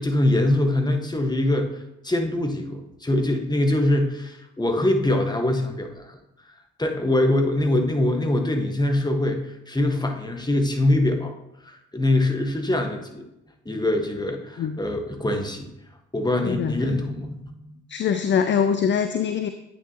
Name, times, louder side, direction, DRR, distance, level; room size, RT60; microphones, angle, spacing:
voice 1, 0.0-6.2 6.8-9.4 9.7-11.3 11.6-13.2 13.6-15.7 16.1-17.4, left 1 dB, 10° left, 4 dB, 1.3 m, -23 dB
voice 2, 16.4-16.9 17.9-19.5, left 7 dB, 35° left, 9 dB, 0.5 m, -23 dB
8.9 x 6.4 x 2.9 m, 0.86 s
figure-of-eight pair, 40°, 36 cm